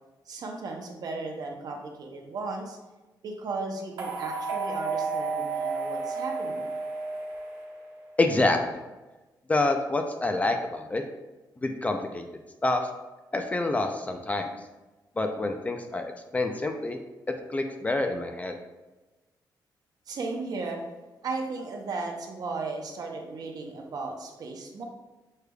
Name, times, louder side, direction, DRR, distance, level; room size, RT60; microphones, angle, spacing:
voice 1, 0.3-2.8 3.2-6.6 20.1-20.8 21.2-24.8, right 3 dB, 55° right, 2 dB, 0.7 m, -35 dB
sound 1, 4.0-8.2, right 4 dB, 80° right, 0.9 m, -32 dB
voice 2, 8.2-8.8 9.5-11.0 11.6-12.3 12.6-12.9 13.3-14.5 15.2-17.0 17.5-18.5, left 2 dB, 20° left, 5 dB, 0.3 m, -27 dB
6.4 x 3.2 x 2.3 m, 1.1 s
wide cardioid pair, 155°, 8 cm